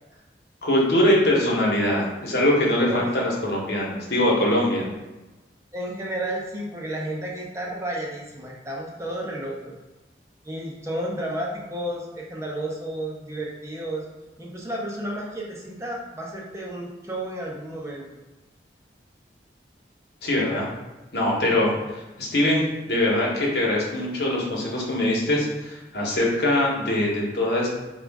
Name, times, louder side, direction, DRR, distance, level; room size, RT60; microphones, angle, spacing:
voice 1, 0.6-4.9 20.2-20.7 21.1-22.6 22.9-27.7, left 1 dB, 65° left, -3 dB, 1.0 m, -22 dB
voice 2, 5.7-9.8 10.4-14.0 14.4-18.2, right 1 dB, 15° right, -3 dB, 0.6 m, -32 dB
5.0 x 2.4 x 3.5 m, 1.1 s
head